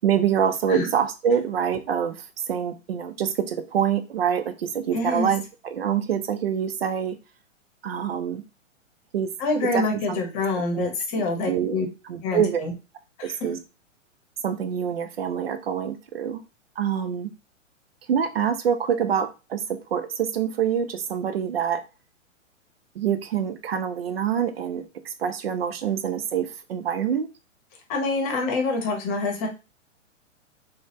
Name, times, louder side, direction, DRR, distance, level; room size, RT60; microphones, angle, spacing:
voice 1, 0.0-2.2 2.5-7.2 7.8-8.4 9.1-9.3 9.7-10.2 10.7-12.6 13.2-13.6 14.4-16.4 16.8-17.3 18.1-21.8 23.0-27.3, right 8 dB, 50° right, 10 dB, 0.6 m, -26 dB
voice 2, 4.9-5.3 9.4-11.9 12.2-12.7 13.2-13.4 27.9-29.5, left 3 dB, 30° left, 3 dB, 0.9 m, -26 dB
3.8 x 2.2 x 3.1 m, 0.29 s
figure-of-eight pair, 110°, 38 cm